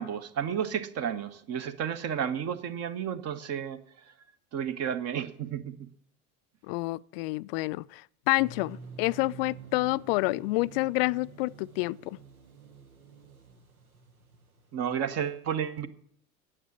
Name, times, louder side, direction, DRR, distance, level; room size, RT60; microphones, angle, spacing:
voice 1, 0.0-3.8 4.5-5.7 14.7-15.9, right 8 dB, 35° right, 1.2 m, -32 dB
voice 2, 6.7-12.2, left 22 dB, 45° left, 0.4 m, -28 dB
sound 1, 8.4-15.3, right 5 dB, 80° right, 1.3 m, -49 dB
9.8 x 7.3 x 9.3 m
figure-of-eight pair, 70°, 42 cm